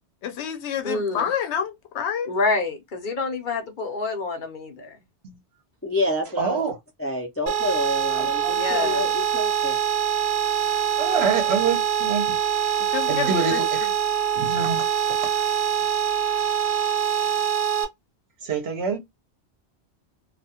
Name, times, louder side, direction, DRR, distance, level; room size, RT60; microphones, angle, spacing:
voice 1, 0.2-2.3 12.8-13.9, left 8 dB, 80° left, 0.9 m, -29 dB
voice 2, 0.8-1.3 2.3-5.0 8.5-9.1, left 3 dB, 50° left, 0.8 m, -27 dB
voice 3, 5.8-6.6 7.0-9.8, left 1 dB, 20° left, 0.4 m, -28 dB
voice 4, 6.4-6.7 8.2-8.5 11.0-12.4 12.6-12.8 13.1-13.7 14.4-14.9 18.4-19.0, right 6 dB, 70° right, 0.9 m, -26 dB
sound 1, 7.5-17.8, right 9 dB, 35° right, 0.8 m, -24 dB
2.4 x 2.3 x 2.7 m
omnidirectional pair, 1.2 m